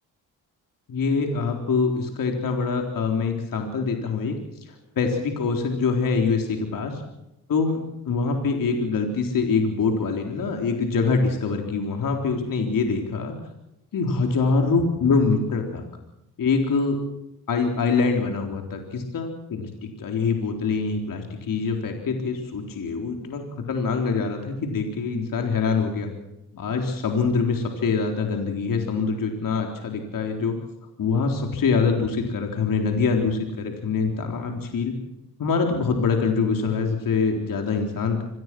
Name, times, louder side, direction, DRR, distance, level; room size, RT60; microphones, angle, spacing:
voice 1, 0.9-4.4 4.6-7.0 7.5-13.4 13.9-15.8 16.4-17.0 17.5-26.1 26.5-30.6 31.0-34.9 35.4-38.2, left 4 dB, 60° left, 3 dB, 4.0 m, -24 dB
25.5 x 20.0 x 6.2 m, 0.89 s
cardioid pair, 75°, 37 cm